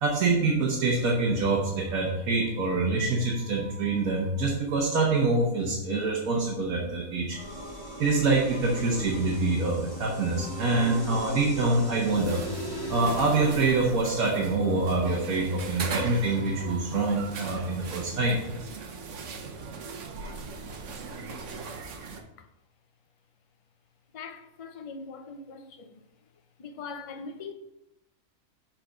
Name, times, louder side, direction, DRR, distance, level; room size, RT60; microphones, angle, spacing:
voice 1, 0.0-7.4 8.0-12.4 12.9-18.4 19.6-19.9 20.2-20.3, right 3 dB, 85° right, 1.5 m, -25 dB
sound 1, 7.3-14.2, equal, 15° left, 1.8 m, -38 dB
sound 2, 12.1-22.2, right 4 dB, 65° right, 1.1 m, -39 dB
voice 2, 24.1-26.0 26.6-27.5, left 4 dB, 45° left, 0.4 m, -41 dB
7.4 x 3.9 x 5.0 m
omnidirectional pair, 1.5 m